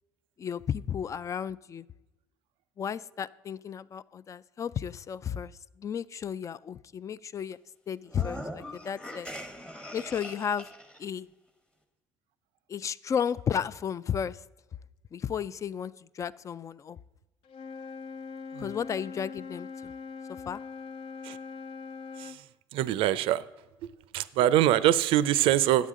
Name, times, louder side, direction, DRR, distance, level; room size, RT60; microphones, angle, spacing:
voice 1, 0.4-1.9 2.8-5.5 5.8-7.6 7.9-9.3 9.9-10.7 11.0-11.3 12.7-14.4 15.1-17.0 18.6-19.9 20.5-20.6, left 8 dB, 35° left, 18 dB, 0.3 m, -33 dB
sound 1, 8.1-11.0, equal, 10° left, 1.0 m, -41 dB
Wind instrument woodwind instrument, 17.4-22.4, left 5 dB, 70° left, 0.6 m, -42 dB
voice 2, 22.7-23.4 23.8-25.9, right 12 dB, 70° right, 17 dB, 0.5 m, -24 dB
10.0 x 8.2 x 3.7 m, 1.1 s
supercardioid pair, 90°, 10 cm